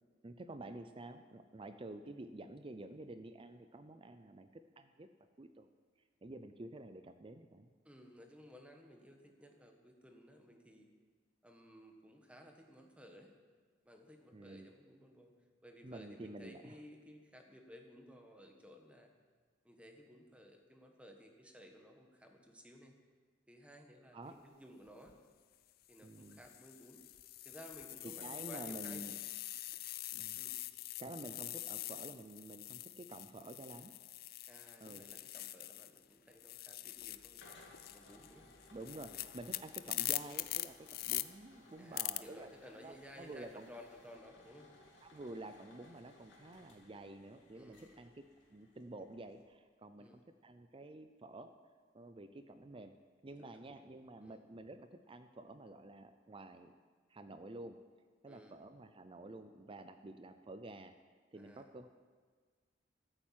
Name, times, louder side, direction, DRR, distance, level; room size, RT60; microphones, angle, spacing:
voice 1, 0.2-5.1 5.4-5.7 6.2-7.7 14.3-14.7 15.8-16.8 24.1-24.4 26.0-26.4 28.0-29.1 30.1-30.4 31.0-33.9 34.8-35.0 38.7-42.5 42.8-43.7 45.0-48.2 48.5-51.5 51.9-52.9 53.2-56.7 57.1-57.8 58.2-60.9 61.3-61.9, right 2 dB, 30° right, 9 dB, 0.5 m, -50 dB
voice 2, 7.8-10.9 11.4-13.3 13.8-15.3 15.6-19.1 19.6-22.9 23.5-25.2 25.9-27.0 27.4-29.0 30.4-30.6 34.5-37.5 37.9-38.5 39.0-39.2 41.8-44.7 47.5-48.1 50.0-50.2 53.3-53.6 54.2-54.4 58.3-58.6 61.3-61.7, equal, 5° right, 3 dB, 1.4 m, -57 dB
sound 1, 24.9-25.1 25.9-36.0 36.3-41.2 42.0-42.2, left 16 dB, 55° left, 0.4 m, -43 dB
sound 2, 36.9-49.4, left 2 dB, 70° left, 2.8 m, -62 dB
13.5 x 8.9 x 7.5 m, 1.5 s
head